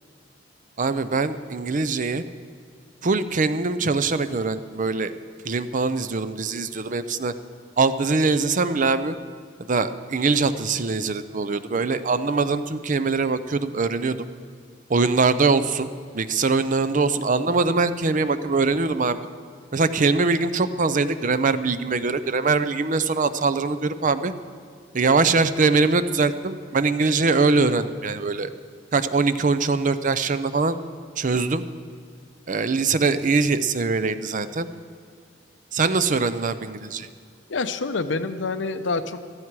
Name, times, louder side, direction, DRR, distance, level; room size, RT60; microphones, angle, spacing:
voice 1, 0.8-2.2 3.0-5.1 5.4-7.3 7.8-9.2 9.7-14.2 14.9-19.2 19.7-24.3 24.9-28.5 28.9-30.8 31.2-31.6 32.5-34.7 35.7-37.1, right 4 dB, 45° right, 12 dB, 0.6 m, -22 dB
voice 2, 37.5-39.3, left 3 dB, 85° left, 10 dB, 0.8 m, -27 dB
15.5 x 13.5 x 4.7 m, 2.2 s
head